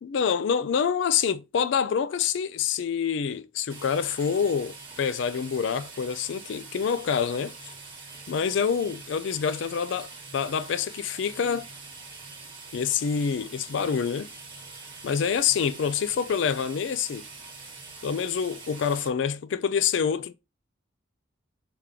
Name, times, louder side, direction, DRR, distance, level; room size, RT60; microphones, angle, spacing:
voice 1, 0.0-7.5 8.3-11.7 12.7-14.3 15.0-17.2 18.0-20.3, left 7 dB, 60° left, 0.4 m, -26 dB
sound 1, 3.7-19.1, right 3 dB, 25° right, 1.6 m, -44 dB
3.5 x 2.9 x 3.6 m
head